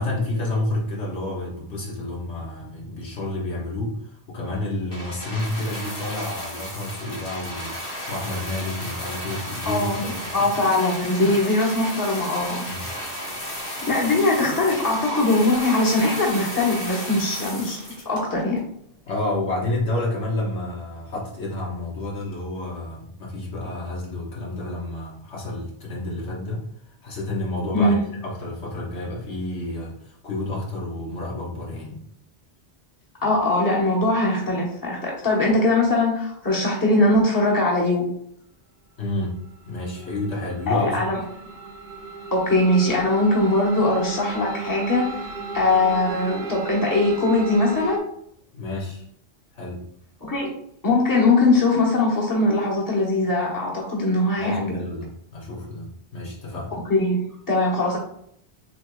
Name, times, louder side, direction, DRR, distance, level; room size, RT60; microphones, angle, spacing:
voice 1, 0.0-10.5 12.6-12.9 19.1-26.6 27.0-32.0 39.0-39.4 39.7-41.1 48.5-49.0 49.5-49.8 54.4-56.7, left 2 dB, 80° left, -4 dB, 1.6 m, -30 dB
sound 1, 4.9-18.6 19.3-19.4, equal, 55° left, 1.9 m, -34 dB
voice 2, 9.6-10.0 10.3-12.6 13.8-18.6 27.7-28.0 33.2-38.1 40.7-41.2 42.3-45.3 45.5-48.0 50.2-50.5 50.8-54.8 56.7-58.0, left 2 dB, 20° left, -3 dB, 1.1 m, -21 dB
sound 2, 39.5-48.0, right 4 dB, 45° right, 0.8 m, -35 dB
7.1 x 3.3 x 2.3 m, 0.69 s
omnidirectional pair, 1.2 m